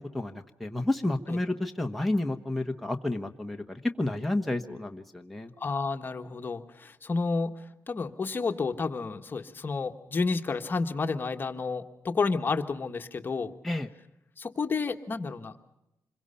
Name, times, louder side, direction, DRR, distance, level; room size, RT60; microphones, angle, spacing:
voice 1, 0.1-5.5 13.6-13.9, left 1 dB, ahead, 2 dB, 1.2 m, -30 dB
voice 2, 5.6-13.5 14.4-15.5, left 4 dB, 35° left, 6 dB, 1.5 m, -31 dB
26.5 x 22.5 x 5.7 m, 0.86 s
cardioid pair, 110°, 6 cm